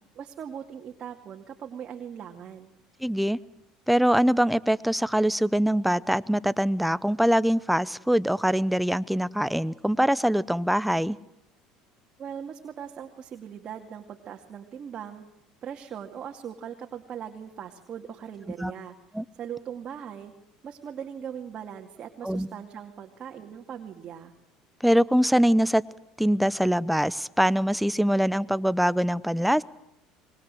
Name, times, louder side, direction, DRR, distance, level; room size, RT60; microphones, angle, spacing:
voice 1, 0.2-2.7 12.2-15.2 15.6-18.9 19.4-20.3 20.6-24.3, right 8 dB, 45° right, 2 dB, 2.3 m, -40 dB
voice 2, 3.0-3.4 3.9-11.2 18.6-18.7 19.1-19.2 22.2-22.5 24.8-25.8 26.2-29.6, equal, ahead, 18 dB, 0.8 m, -23 dB
24.5 x 22.0 x 7.8 m, 0.87 s
supercardioid pair, 85°, 2 cm